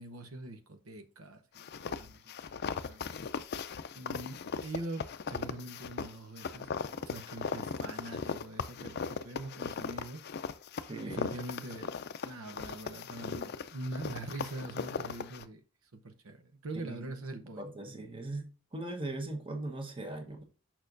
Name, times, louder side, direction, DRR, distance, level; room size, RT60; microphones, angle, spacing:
voice 1, 0.0-2.3 2.9-3.2 3.9-6.7 7.1-10.2 11.1-11.9 12.2-15.6 16.0-17.6, right 2 dB, 90° right, 0.8 m, -43 dB
sound 1, 1.6-15.5, left 5 dB, 50° left, 0.4 m, -38 dB
voice 2, 10.9-11.3 16.7-17.0 17.6-18.5 18.7-20.4, right 2 dB, 25° right, 1.1 m, -39 dB
6.5 x 6.0 x 2.6 m
head